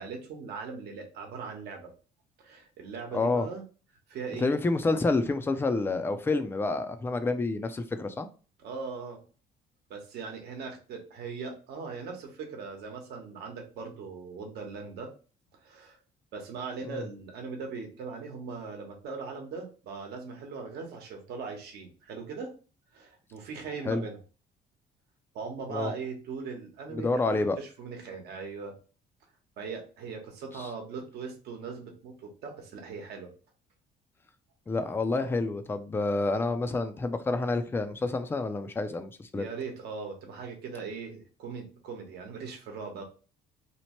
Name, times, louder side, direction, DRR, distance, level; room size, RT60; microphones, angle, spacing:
voice 1, 0.0-1.9 2.4-3.6 4.1-4.5 8.6-9.2 9.9-15.1 15.6-16.0 16.3-22.5 22.9-24.2 25.3-28.7 29.6-33.3 39.3-43.0, right 5 dB, 70° right, 1.0 m, -39 dB
voice 2, 3.1-3.5 4.4-8.3 16.9-17.0 23.9-24.0 25.7-25.9 26.9-27.6 30.6-30.7 34.7-39.4, left 3 dB, 15° left, 0.3 m, -28 dB
2.9 x 2.1 x 2.9 m
cardioid pair, 110°, 17 cm